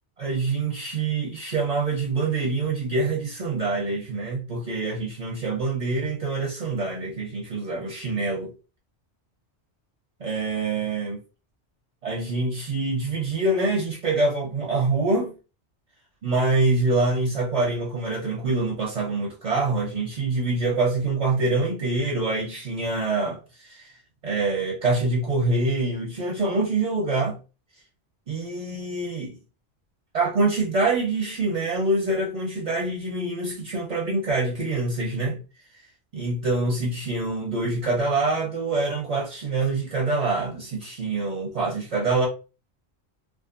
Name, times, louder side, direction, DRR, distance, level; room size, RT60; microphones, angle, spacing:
voice 1, 0.2-8.5 10.2-11.2 12.0-15.3 16.2-23.9 24.2-27.4 28.3-29.4 30.1-35.4 36.1-42.3, right 3 dB, 45° right, 0.6 m, -25 dB
2.5 x 2.4 x 2.5 m
omnidirectional pair, 1.2 m